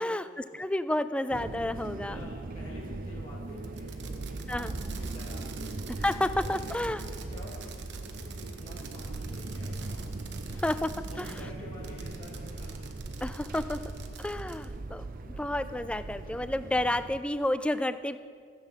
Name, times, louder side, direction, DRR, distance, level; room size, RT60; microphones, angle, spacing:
voice 1, 0.0-0.6 2.1-5.7 6.4-10.1 10.4-10.6 11.1-12.8 13.0-13.1 14.1-14.2, left 1 dB, 30° left, -6 dB, 1.8 m, -48 dB
voice 2, 0.6-2.3 4.5-4.7 6.0-7.0 10.5-10.9 11.2-11.3 13.2-13.8 14.2-18.2, left 1 dB, 5° left, 13 dB, 0.3 m, -30 dB
sound 1, 1.3-17.2, right 2 dB, 45° right, 0.6 m, -39 dB
Fireworks, 3.6-11.4 11.8-14.7, right 8 dB, 60° right, 1.0 m, -48 dB
15.5 x 8.1 x 5.8 m, 2.1 s
head